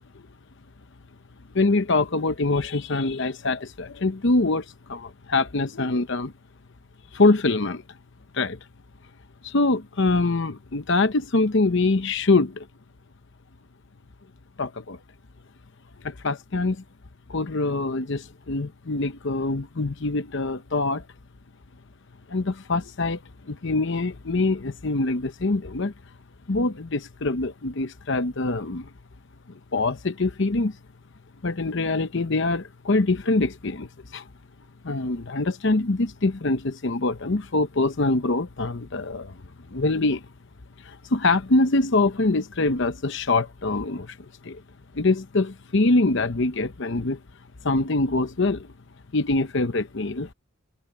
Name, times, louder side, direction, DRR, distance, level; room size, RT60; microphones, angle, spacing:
voice 1, 1.5-6.3 7.1-7.8 8.3-8.6 9.4-12.7 14.6-15.0 16.0-16.8 17.3-21.0 22.3-23.2 23.5-25.9 26.5-28.9 29.7-30.8 31.4-34.3 34.8-39.4 39.7-40.2 40.8-44.2 44.4-44.6 44.9-47.2 47.6-48.7 49.1-50.3, left 2 dB, 55° left, 0.8 m, -24 dB
head